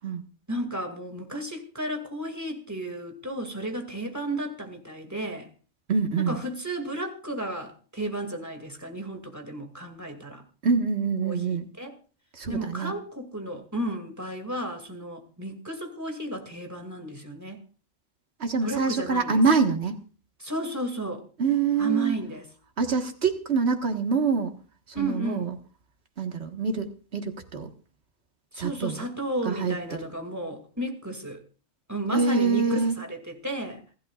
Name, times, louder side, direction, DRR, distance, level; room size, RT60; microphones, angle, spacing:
voice 1, 0.5-5.5 6.3-10.4 11.2-12.0 12.5-17.6 18.6-19.4 20.4-21.2 21.8-22.4 24.9-25.5 28.5-31.4 31.9-33.8, right 1 dB, 15° right, 4 dB, 2.3 m, -33 dB
voice 2, 5.9-6.4 10.6-11.7 12.3-12.9 18.4-20.0 21.4-22.2 22.8-24.5 24.9-25.6 26.2-27.7 28.6-29.1 29.4-29.7 32.1-33.0, right 5 dB, 65° right, 4 dB, 1.8 m, -25 dB
28.0 x 11.5 x 2.4 m, 0.37 s
omnidirectional pair, 1.2 m